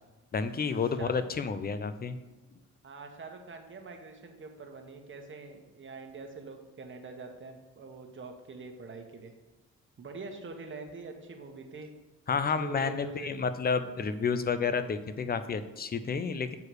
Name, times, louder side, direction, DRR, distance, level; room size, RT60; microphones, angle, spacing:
voice 1, 0.3-2.2 12.3-16.6, left 5 dB, 30° left, 11 dB, 0.6 m, -30 dB
voice 2, 2.8-9.3 10.0-11.9 12.4-13.3, right 3 dB, 40° right, 4 dB, 1.3 m, -44 dB
8.1 x 4.8 x 4.8 m, 1.1 s
cardioid pair, 90°, 30 cm